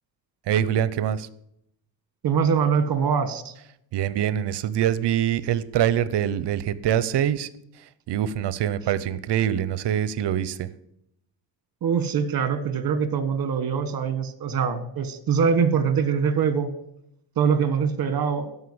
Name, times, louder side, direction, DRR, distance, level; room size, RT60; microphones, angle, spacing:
voice 1, 0.5-1.3 3.9-7.5 8.1-10.7, right 10 dB, 65° right, 17 dB, 0.8 m, -24 dB
voice 2, 2.2-3.5 11.8-16.7 17.4-18.5, right 6 dB, 50° right, 11 dB, 1.5 m, -23 dB
13.0 x 5.6 x 7.9 m, 0.78 s
cardioid pair, 120°, 44 cm